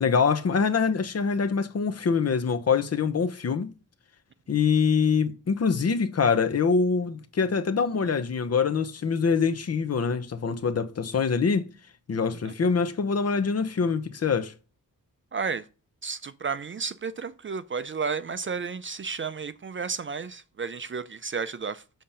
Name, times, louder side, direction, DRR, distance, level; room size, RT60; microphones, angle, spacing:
voice 1, 0.0-3.7 4.5-11.7 12.1-14.5, left 5 dB, 45° left, 0.8 m, -24 dB
voice 2, 15.3-15.7 16.0-21.8, right 5 dB, 35° right, 0.4 m, -32 dB
7.2 x 3.7 x 5.6 m
wide cardioid pair, 105°, 36 cm